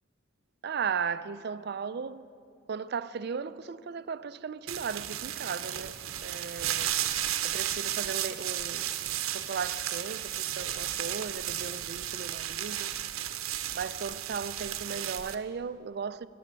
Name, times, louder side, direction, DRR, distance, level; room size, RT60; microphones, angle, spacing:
voice 1, 0.6-2.3 2.7-6.9 7.4-8.9 9.3-12.9 13.7-16.3, right 6 dB, 50° right, 0.4 m, -36 dB
sound 1, 4.7-15.3, right 12 dB, 80° right, 0.7 m, -34 dB
20.5 x 7.7 x 7.4 m
head